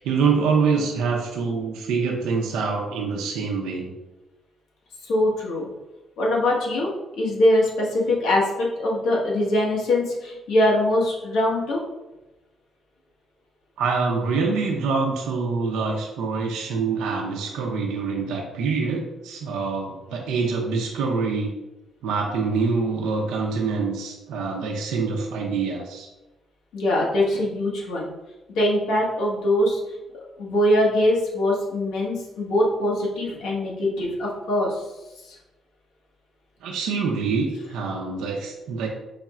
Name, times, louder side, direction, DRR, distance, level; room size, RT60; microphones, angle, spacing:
voice 1, 0.0-3.9 13.8-21.5 22.0-26.1 36.6-38.9, right 4 dB, 90° right, 0 dB, 0.6 m, -25 dB
voice 2, 5.0-5.7 6.2-11.8 26.7-28.1 28.5-30.0 30.4-34.8 35.2-35.4, left 1 dB, 85° left, -4 dB, 1.4 m, -22 dB
4.8 x 2.4 x 4.2 m, 1.0 s
cardioid pair, 90°, 0 cm